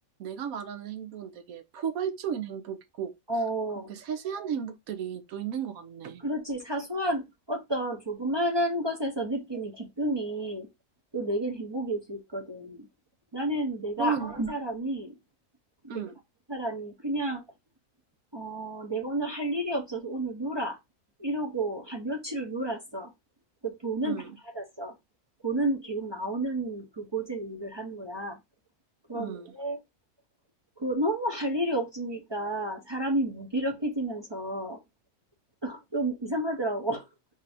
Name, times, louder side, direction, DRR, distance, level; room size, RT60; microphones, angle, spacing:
voice 1, 0.2-3.1 3.9-6.2 14.0-14.3 15.9-16.1 24.0-24.3 29.1-29.5, right 8 dB, 90° right, 1.2 m, -34 dB
voice 2, 3.3-3.9 6.2-10.7 11.1-12.9 13.3-15.1 15.9-16.1 16.5-17.4 18.3-20.8 21.2-23.1 23.6-24.3 24.5-24.9 25.4-28.4 29.1-29.8 30.8-34.8 35.6-37.1, right 1 dB, 35° right, 0.4 m, -31 dB
4.4 x 2.6 x 3.3 m
omnidirectional pair, 1.4 m